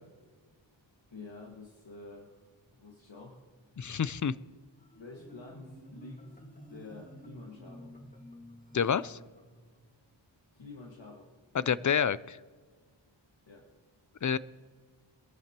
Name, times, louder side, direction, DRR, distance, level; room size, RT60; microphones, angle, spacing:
voice 1, 1.1-2.4 2.7-3.4 3.7-3.8 5.0-6.4 6.7-7.9 10.5-11.3 13.5-13.7, left 3 dB, 70° left, -2 dB, 1.8 m, -48 dB
voice 2, 3.8-4.3 8.7-9.2 11.5-12.4 14.2-14.4, left 7 dB, 40° left, 18 dB, 0.5 m, -28 dB
Marimba xylophone, 4.8-9.9, equal, 15° left, 1.9 m, -51 dB
22.0 x 14.0 x 3.0 m, 1.5 s
wide cardioid pair, 50°, 46 cm